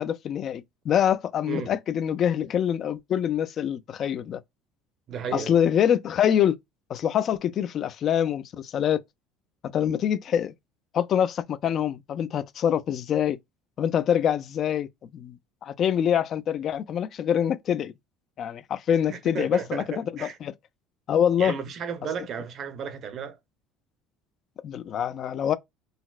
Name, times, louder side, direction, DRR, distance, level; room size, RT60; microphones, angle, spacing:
voice 1, 0.0-4.4 5.3-6.6 6.9-9.0 9.7-10.5 10.9-13.4 13.8-15.4 15.6-17.9 18.4-20.5 21.1-21.5 24.6-25.6, left 9 dB, 40° left, 0.3 m, -25 dB
voice 2, 5.1-5.5 19.1-20.4 21.4-23.4, right 6 dB, 40° right, 0.7 m, -34 dB
3.9 x 2.0 x 2.3 m
cardioid pair, 145°, 0 cm